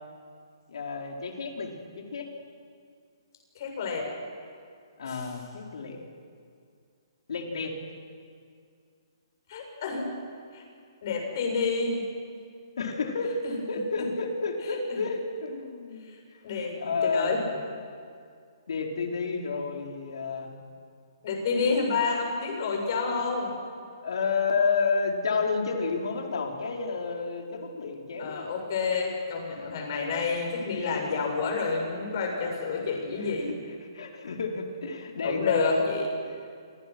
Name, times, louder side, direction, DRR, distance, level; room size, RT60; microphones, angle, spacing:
voice 1, 0.7-2.3 5.0-6.0 7.3-7.8 12.8-13.4 13.7-16.4 16.8-17.6 18.7-20.5 24.0-28.5 30.5-31.2 32.1-32.2 32.9-33.5 33.8-35.9 36.3-36.4, left 4 dB, 70° left, 1 dB, 4.5 m, -31 dB
voice 2, 3.6-4.1 5.0-5.2 9.5-10.1 10.5-10.6 11.0-12.0 13.4-13.5 14.0-14.1 16.1-16.2 16.4-17.4 21.2-23.5 28.2-33.5 35.2-36.1, left 4 dB, 45° left, 1 dB, 7.4 m, -29 dB
28.5 x 25.5 x 6.3 m, 2.2 s
hypercardioid pair, 160°, 3 cm